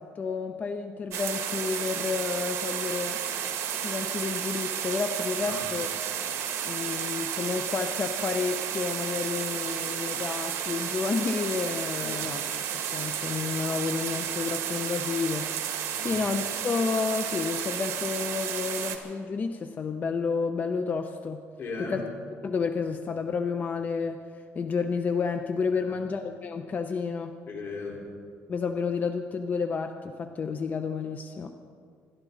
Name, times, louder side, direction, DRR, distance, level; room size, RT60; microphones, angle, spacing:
voice 1, 0.0-3.2 3.8-5.9 6.6-21.4 21.8-22.0 22.4-27.4 28.5-31.5, left 5 dB, 35° left, 7 dB, 0.7 m, -30 dB
sound 1, 1.1-19.0, right 9 dB, 65° right, 1.8 m, -32 dB
voice 2, 11.9-12.3 15.9-16.2 21.6-22.0 25.7-26.0 27.5-28.0, left 4 dB, 50° left, -2 dB, 4.4 m, -38 dB
27.5 x 13.0 x 4.1 m, 2.2 s
cardioid pair, 125°, 5 cm